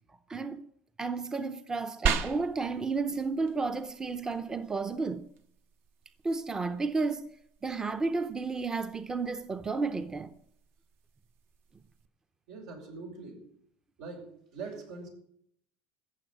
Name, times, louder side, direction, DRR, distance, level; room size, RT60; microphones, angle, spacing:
voice 1, 0.3-0.7 1.0-5.3 6.2-7.3 7.6-10.3, right 4 dB, 15° right, 0.6 m, -32 dB
sound 1, 2.1-12.1, right 6 dB, 60° right, 1.2 m, -40 dB
voice 2, 12.5-13.4 14.0-15.1, right 4 dB, 85° right, 5.7 m, -43 dB
15.5 x 6.9 x 9.2 m
supercardioid pair, 125°, 4 cm